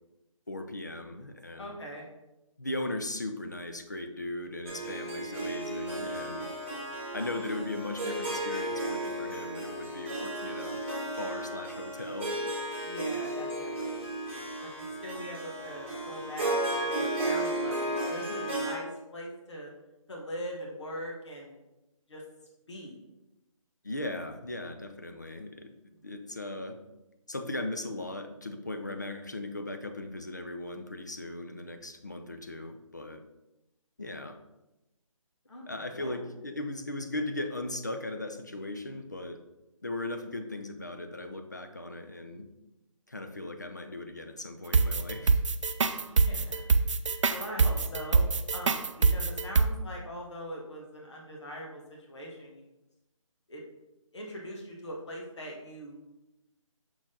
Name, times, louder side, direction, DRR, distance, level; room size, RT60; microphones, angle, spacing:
voice 1, 0.5-1.7 2.6-6.5 7.1-10.8 11.1-12.3 23.8-25.8 26.0-26.8 27.3-33.2 34.0-34.4 35.7-39.4 39.8-42.5 43.1-45.4, left 2 dB, 35° left, 6 dB, 0.4 m, -38 dB
voice 2, 1.6-2.0 12.8-14.0 14.6-19.7 20.1-21.6 22.1-22.2 22.7-23.0 25.9-26.0 35.5-36.2 45.8-46.6 47.0-51.8 52.1-52.6 53.5-53.6 54.1-56.0, equal, 55° left, -2 dB, 1.4 m, -42 dB
Harp, 4.7-18.7, right 1 dB, 20° right, 2.1 m, -34 dB
sound 1, 44.7-49.7, right 4 dB, 60° right, 0.4 m, -24 dB
6.0 x 4.3 x 3.7 m, 0.98 s
hypercardioid pair, 180°, 18 cm